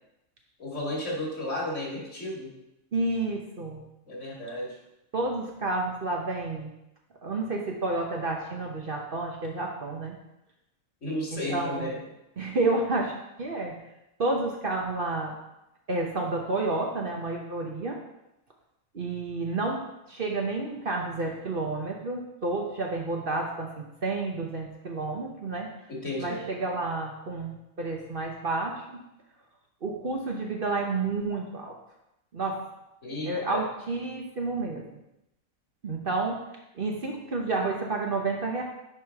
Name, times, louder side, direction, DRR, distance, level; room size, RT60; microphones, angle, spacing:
voice 1, 0.6-2.5 4.1-4.7 11.0-12.0 25.9-26.5 33.0-33.6, left 1 dB, 60° left, -3 dB, 2.3 m, -33 dB
voice 2, 2.9-3.8 5.1-6.7 7.2-10.1 11.3-11.9 12.4-13.1 13.4-13.7 14.2-15.3 15.9-18.0 18.9-19.8 20.1-25.7 26.2-29.0 29.8-31.7 32.3-32.6 33.2-34.8 35.8-36.4 36.7-38.6, right 3 dB, 45° right, 0 dB, 1.1 m, -30 dB
9.7 x 5.1 x 3.5 m, 0.89 s
omnidirectional pair, 1.4 m